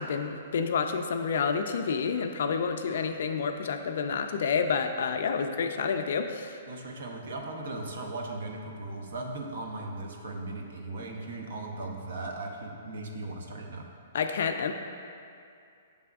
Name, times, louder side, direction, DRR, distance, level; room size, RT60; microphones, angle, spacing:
voice 1, 0.0-6.6 14.1-14.7, left 5 dB, 65° left, 6 dB, 0.3 m, -29 dB
voice 2, 6.7-13.9, right 2 dB, 70° right, 1 dB, 0.6 m, -38 dB
6.8 x 3.4 x 2.3 m, 2.5 s
hypercardioid pair, 145°, 0 cm